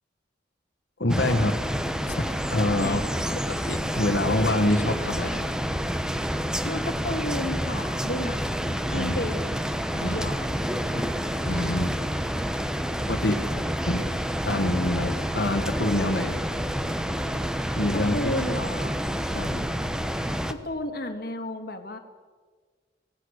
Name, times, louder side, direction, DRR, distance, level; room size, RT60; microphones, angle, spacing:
voice 1, 1.0-1.6 2.0-2.2 2.5-3.0 3.5-5.5 8.9-9.2 10.0-10.3 10.8-11.0 11.4-12.0 13.1-13.4 13.8-14.1 14.4-16.4 17.7-18.3 19.0-19.7, left 1 dB, 75° left, 2 dB, 1.7 m, -26 dB
sound 1, 1.1-20.5, equal, 5° right, 1.0 m, -28 dB
voice 2, 2.7-3.4 6.6-10.6 17.9-18.9 20.5-22.0, left 1 dB, 60° left, 6 dB, 2.1 m, -33 dB
25.5 x 18.0 x 6.6 m, 1.5 s
head